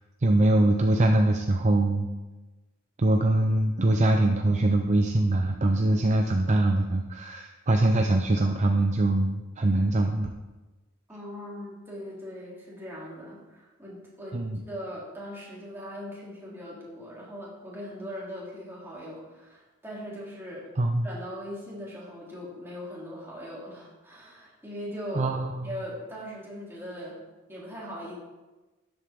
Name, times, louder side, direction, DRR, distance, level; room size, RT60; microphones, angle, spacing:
voice 1, 0.2-2.1 3.0-10.3 14.3-14.6 20.8-21.1 25.1-25.7, right 1 dB, 35° right, 3 dB, 0.6 m, -23 dB
voice 2, 11.1-20.7 21.0-25.3 25.6-27.2 27.5-28.2, equal, 10° right, -6 dB, 3.0 m, -40 dB
12.5 x 8.0 x 3.6 m, 1.2 s
head